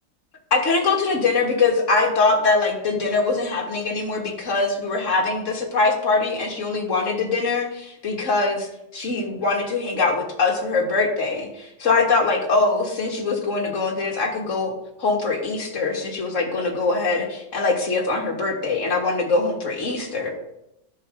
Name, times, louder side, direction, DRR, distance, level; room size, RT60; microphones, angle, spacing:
voice 1, 0.5-8.7 8.9-14.7 15.0-20.3, left 3 dB, 50° left, 0 dB, 2.0 m, -22 dB
11.0 x 6.2 x 5.0 m, 0.85 s
omnidirectional pair, 1.7 m